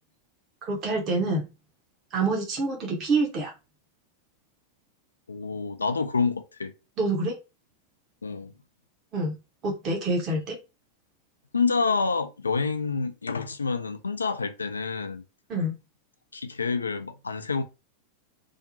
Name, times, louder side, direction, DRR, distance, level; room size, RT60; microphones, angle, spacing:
voice 1, 0.6-1.5 2.1-3.5 7.0-7.3 9.1-9.3 9.6-10.6 15.5-15.7, right 2 dB, 35° right, 0.8 m, -26 dB
voice 2, 5.3-6.7 8.2-8.5 11.5-15.2 16.3-17.6, left 4 dB, 75° left, 0.3 m, -28 dB
2.7 x 2.0 x 2.6 m
figure-of-eight pair, 90°, 0 cm